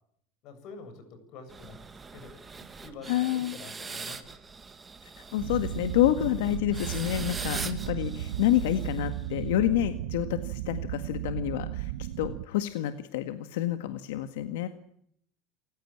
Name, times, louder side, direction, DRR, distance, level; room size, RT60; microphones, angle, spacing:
voice 1, 0.4-1.8 2.1-4.4, left 4 dB, 50° left, 9 dB, 7.8 m, -47 dB
sound 1, 1.5-9.5, right 4 dB, 15° right, 2.0 m, -42 dB
voice 2, 3.1-3.5 5.0-14.7, left 13 dB, 90° left, 9 dB, 1.8 m, -28 dB
sound 2, 5.4-12.4, right 14 dB, 75° right, 1.0 m, -35 dB
28.5 x 16.0 x 8.8 m, 0.70 s
supercardioid pair, 145°, 0 cm